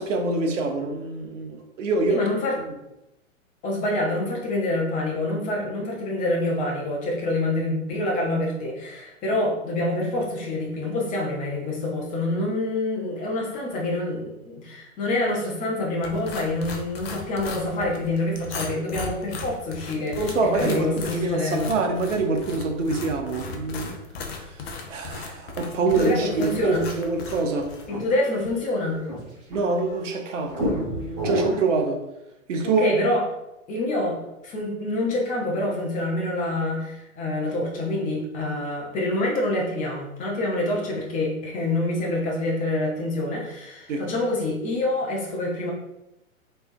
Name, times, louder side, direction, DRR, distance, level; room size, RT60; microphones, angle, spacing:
voice 1, 0.0-2.2 2.6-2.7 20.2-24.0 24.4-24.6 24.9-27.7 29.5-32.0 32.5-32.9 43.9-44.1, right 3 dB, 60° right, 4 dB, 0.8 m, -25 dB
voice 2, 2.1-2.5 3.6-21.7 25.1-25.4 25.9-26.8 27.9-29.0 32.6-33.2 33.7-45.7, left 2 dB, 20° left, -2 dB, 0.8 m, -26 dB
sound 1, 16.0-27.9, left 4 dB, 45° left, 0.6 m, -37 dB
sound 2, 27.0-30.0 30.5-31.8, left 1 dB, 25° right, 1.2 m, -31 dB
3.3 x 3.3 x 2.6 m, 0.90 s
figure-of-eight pair, 105°, 42 cm